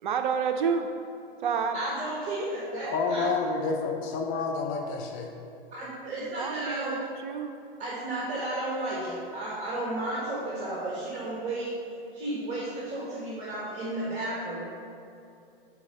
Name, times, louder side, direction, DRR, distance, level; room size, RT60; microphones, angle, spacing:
voice 1, 0.0-0.9 1.4-1.7 2.8-3.7 6.4-7.6, right 6 dB, 55° right, 6 dB, 0.5 m, -30 dB
voice 2, 1.7-3.2 5.7-7.0 7.8-11.8 12.1-14.7, right 1 dB, 25° right, -7 dB, 1.5 m, -33 dB
voice 3, 2.9-5.3, left 4 dB, 30° left, 2 dB, 0.7 m, -29 dB
6.9 x 4.2 x 5.3 m, 2.6 s
hypercardioid pair, 115°, 29 cm